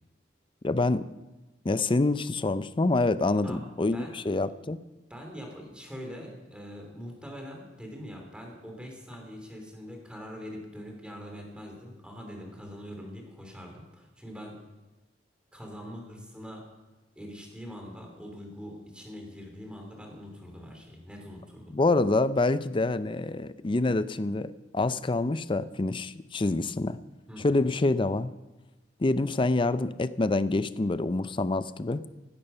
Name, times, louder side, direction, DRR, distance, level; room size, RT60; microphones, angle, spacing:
voice 1, 0.6-1.1 1.6-4.8 21.7-27.0 27.4-28.3 29.0-32.0, left 2 dB, 25° left, 15 dB, 0.5 m, -26 dB
voice 2, 5.1-14.6 15.5-16.6 17.1-21.7 27.3-27.7, equal, 5° right, 1 dB, 3.0 m, -43 dB
16.0 x 12.5 x 5.6 m, 1.1 s
head